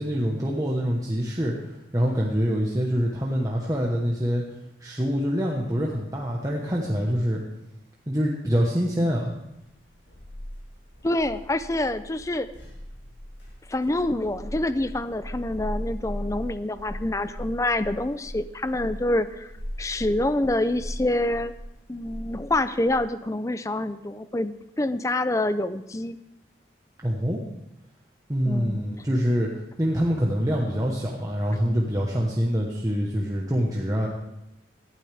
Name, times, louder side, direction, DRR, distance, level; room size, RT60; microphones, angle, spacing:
voice 1, 0.0-4.4 4.8-7.4 8.1-9.3 27.0-27.4 28.3-29.5 29.8-34.1, equal, 20° right, -2 dB, 1.2 m, -25 dB
sound 1, 9.5-23.0, equal, 80° left, 6.1 m, -38 dB
voice 2, 11.0-12.5 13.7-19.5 19.8-21.5 21.9-26.2 28.5-29.0, left 1 dB, 15° left, 13 dB, 0.5 m, -26 dB
18.0 x 11.5 x 3.5 m, 0.86 s
head